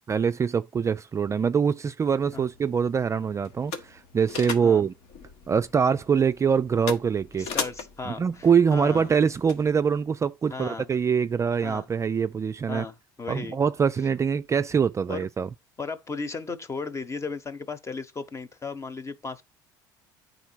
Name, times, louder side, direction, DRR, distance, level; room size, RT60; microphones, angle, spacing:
voice 1, 0.1-4.9 5.5-7.5 8.0-12.9 13.3-15.5, right 6 dB, 25° right, 0.4 m, -24 dB
sound 1, 2.0-10.0, left 5 dB, 70° left, 1.4 m, -39 dB
voice 2, 7.4-9.1 10.5-10.9 11.6-11.9 12.7-13.6 15.1-15.3 15.8-19.4, left 4 dB, 25° left, 1.1 m, -35 dB
9.2 x 4.1 x 4.5 m
hypercardioid pair, 70°, 11 cm